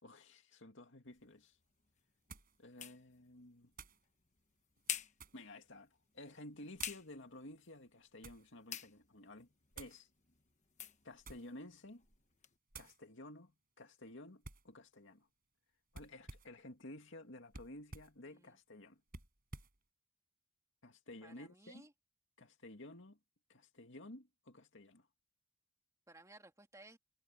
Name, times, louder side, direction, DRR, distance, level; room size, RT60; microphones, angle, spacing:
voice 1, 0.0-1.6 2.6-3.7 5.3-9.5 9.8-10.1 11.0-12.0 12.7-15.3 15.9-19.0 20.8-21.9 22.4-23.2 23.5-25.1, left 1 dB, 65° left, 2.4 m, -53 dB
sound 1, 1.1-12.6, left 9 dB, 35° left, 1.1 m, -51 dB
sound 2, 1.2-1.3 2.3-2.6 3.7-4.0 4.8-5.5 6.7-7.1 7.8-8.5 9.7-10.0 11.1-11.6 12.0-12.3 12.7-13.0 14.4-14.7 15.9-16.6 17.5-18.2 19.1-19.8, right 3 dB, 45° right, 5.6 m, -54 dB
voice 2, 18.2-18.6 21.2-21.9 26.1-27.0, right 2 dB, 15° right, 2.8 m, -59 dB
head